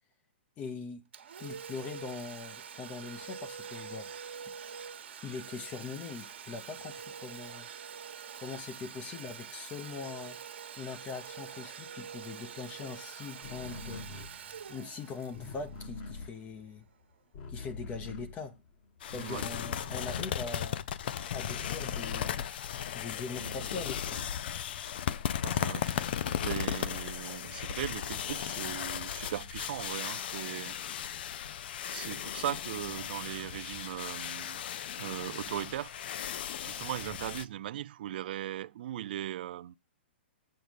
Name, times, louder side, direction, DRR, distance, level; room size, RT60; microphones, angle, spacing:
voice 1, 0.6-1.0 1.4-4.1 5.2-7.7 8.4-10.4 10.8-14.1 14.7-16.8 17.5-18.5 19.1-20.9 21.3-22.5 22.9-24.2, left 5 dB, 25° left, 0.9 m, -42 dB
Domestic sounds home sounds, 1.1-16.6, right 7 dB, 75° right, 1.3 m, -45 dB
sound 1, 13.4-19.0 19.3-24.7 25.1-26.9, left 3 dB, 40° left, 1.6 m, -45 dB
sound 2, 19.0-37.4, left 10 dB, 60° left, 0.5 m, -36 dB
voice 2, 19.1-19.5 25.4-26.1 26.4-30.8 31.1-31.2 31.9-34.6 35.0-35.9 36.6-39.7, right 12 dB, 60° right, 0.4 m, -38 dB
7.9 x 7.0 x 5.1 m
hypercardioid pair, 130°, 6 cm